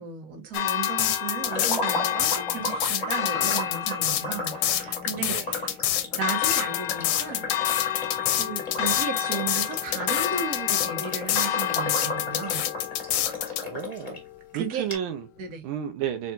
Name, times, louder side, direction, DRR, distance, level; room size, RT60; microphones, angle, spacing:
voice 1, 0.0-5.8 6.1-7.5 8.2-12.7 14.5-14.9 15.4-15.7, right 6 dB, 50° right, 1.6 m, -35 dB
sound 1, 0.5-13.6, left 12 dB, 90° left, 1.4 m, -26 dB
Church bell, 0.5-14.5, left 11 dB, 75° left, 1.2 m, -32 dB
sound 2, 1.4-14.2 14.6-14.7 14.9-15.0, left 2 dB, 25° left, 1.6 m, -35 dB
voice 2, 13.6-14.2 14.5-15.3 15.6-16.3, right 9 dB, 85° right, 1.5 m, -32 dB
4.3 x 4.0 x 2.4 m
omnidirectional pair, 2.2 m